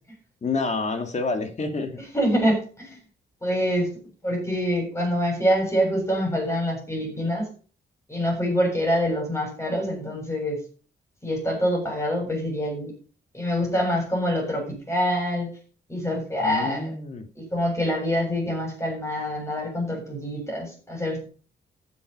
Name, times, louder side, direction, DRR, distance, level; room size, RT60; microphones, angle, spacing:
voice 1, 0.4-2.0 16.4-17.3, left 3 dB, 40° left, 7 dB, 2.2 m, -28 dB
voice 2, 2.1-3.0 3.4-3.9 4.2-7.5 8.1-10.6 11.2-12.9 13.3-15.5 15.9-16.9 17.4-21.2, equal, 15° left, -1 dB, 7.4 m, -25 dB
14.5 x 8.1 x 5.5 m, 0.39 s
wide cardioid pair, 160°, 19 cm